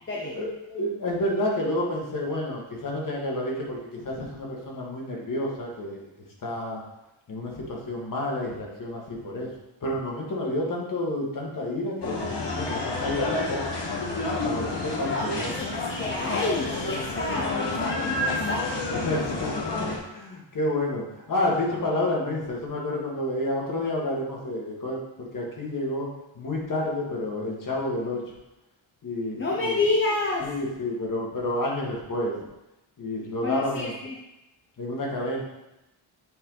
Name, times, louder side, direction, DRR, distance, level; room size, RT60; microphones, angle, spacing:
voice 1, 0.2-6.1 6.4-6.8 7.3-9.5 9.8-12.2 12.6-14.1 14.4-15.5 18.9-19.5 19.8-26.1 26.4-28.2 29.0-29.7 30.4-32.4 33.0-33.9 34.8-35.4, left 1 dB, 40° left, -2 dB, 1.8 m, -30 dB
sound 1, 12.0-20.0, left 2 dB, 55° left, 1.6 m, -29 dB
voice 2, 15.0-18.7 29.4-30.5 33.4-34.1, left 2 dB, 25° left, -3 dB, 0.7 m, -29 dB
7.9 x 4.7 x 3.9 m, 0.94 s
wide cardioid pair, 160°, 49 cm